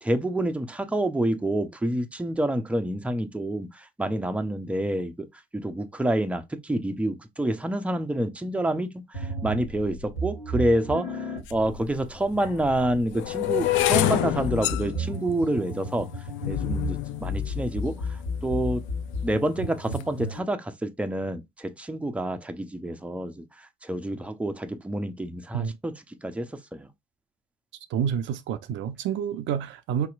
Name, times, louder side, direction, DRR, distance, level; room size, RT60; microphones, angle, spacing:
voice 1, 0.0-5.3 5.5-11.3 11.5-16.1 16.5-18.0 18.4-18.8 19.2-23.4 23.8-25.9 26.2-26.9, right 1 dB, 5° right, 0.6 m, -28 dB
sound 1, 9.1-20.4, left 1 dB, 80° left, 1.7 m, -34 dB
sound 2, 11.5-11.6 12.3-18.5 19.1-19.5 19.8-20.2, left 15 dB, 65° left, 0.5 m, -28 dB
voice 2, 27.9-30.1, right 8 dB, 65° right, 0.5 m, -28 dB
4.2 x 2.9 x 2.4 m
hypercardioid pair, 60°, 21 cm